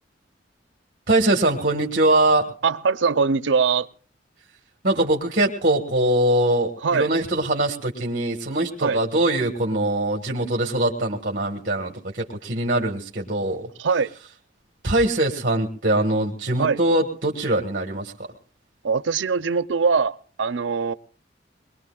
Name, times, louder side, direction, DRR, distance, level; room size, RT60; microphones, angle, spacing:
voice 1, 1.1-2.5 4.8-13.7 14.8-18.1, right 1 dB, 50° right, 1.6 m, -22 dB
voice 2, 2.6-3.9 6.8-7.1 8.8-9.0 13.8-14.1 16.6-16.8 18.8-20.9, right 5 dB, 90° right, 0.6 m, -22 dB
22.5 x 21.0 x 2.4 m
head